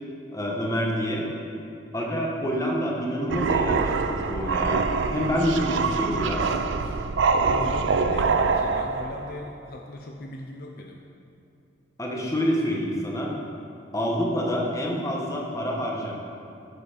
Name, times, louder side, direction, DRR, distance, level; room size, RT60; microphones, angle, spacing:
voice 1, 0.3-1.3 1.9-6.4 12.0-13.3 13.9-16.1, equal, 15° left, -2 dB, 1.0 m, -27 dB
sound 1, 3.3-9.3, right 4 dB, 70° right, 0.4 m, -25 dB
voice 2, 7.4-11.0, left 2 dB, 50° left, 1 dB, 0.5 m, -38 dB
7.8 x 6.7 x 4.9 m, 2.8 s
head